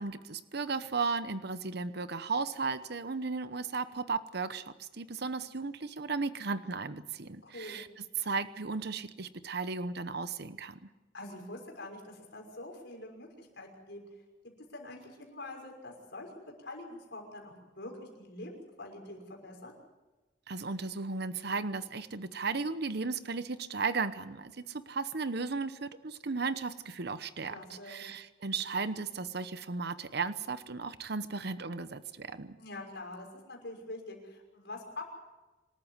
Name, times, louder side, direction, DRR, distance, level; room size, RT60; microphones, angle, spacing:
voice 1, 0.0-7.9 8.2-10.8 20.5-32.6, right 4 dB, 60° right, 13 dB, 0.9 m, -35 dB
voice 2, 7.4-7.9 11.1-14.0 14.7-16.3 16.6-19.8 27.5-28.0 32.6-35.0, left 2 dB, 65° left, 1 dB, 5.9 m, -45 dB
26.0 x 13.5 x 9.5 m, 1.1 s
head